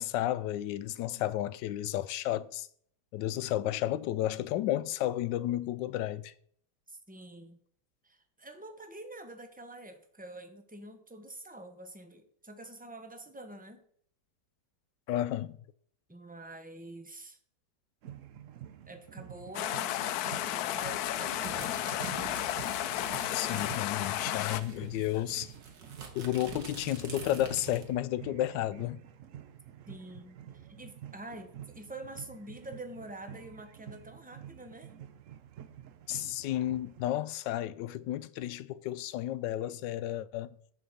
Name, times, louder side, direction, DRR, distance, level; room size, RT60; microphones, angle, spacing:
voice 1, 0.0-2.7 3.1-6.3 15.1-15.6 23.3-25.5 26.1-29.0 36.1-40.5, left 13 dB, 90° left, 1.3 m, -32 dB
voice 2, 6.9-7.6 8.0-13.8 16.1-17.4 18.9-21.7 29.9-34.9, right 1 dB, 10° right, 0.5 m, -47 dB
sound 1, 18.0-37.1, right 10 dB, 65° right, 0.8 m, -49 dB
sound 2, 19.5-24.6, left 13 dB, 70° left, 1.0 m, -33 dB
sound 3, 20.8-23.8 24.1-24.2 24.4-28.0, right 4 dB, 85° right, 2.2 m, -46 dB
10.0 x 4.8 x 7.1 m
omnidirectional pair, 1.9 m